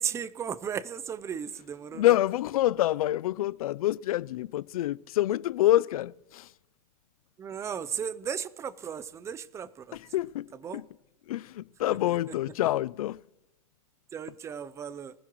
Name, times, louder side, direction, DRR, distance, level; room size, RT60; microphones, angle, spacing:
voice 1, 0.0-2.2 7.4-10.0 10.6-10.8 11.9-12.3 14.1-15.1, right 7 dB, 15° right, 0.5 m, -35 dB
voice 2, 1.9-6.4 9.9-10.5 10.7-10.8 11.3-13.2, left 14 dB, 80° left, 0.4 m, -27 dB
24.5 x 15.0 x 3.1 m
supercardioid pair, 140°, 18 cm